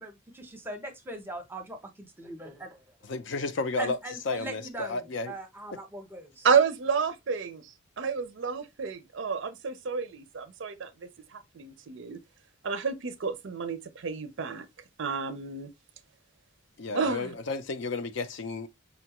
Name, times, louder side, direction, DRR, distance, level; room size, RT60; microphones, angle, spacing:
voice 1, 0.0-2.8 3.8-6.5, right 1 dB, 10° right, 0.7 m, -40 dB
voice 2, 3.0-4.0 4.3-5.3 16.8-18.7, left 3 dB, 60° left, 0.5 m, -32 dB
voice 3, 6.4-12.2 12.6-14.7 15.0-15.7 16.9-17.3, right 6 dB, 60° right, 0.5 m, -30 dB
5.2 x 2.3 x 2.9 m
head